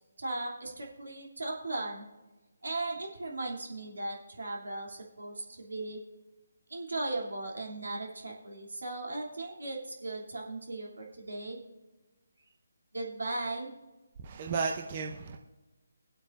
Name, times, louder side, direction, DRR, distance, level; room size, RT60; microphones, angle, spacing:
voice 1, 0.2-2.0 2.6-6.0 6.7-11.6 12.9-13.7, right 2 dB, 75° right, -1 dB, 2.7 m, -37 dB
voice 2, 14.2-15.4, right 5 dB, 35° right, 2 dB, 0.9 m, -33 dB
22.5 x 8.1 x 2.5 m, 1.1 s
figure-of-eight pair, 150°, 0 cm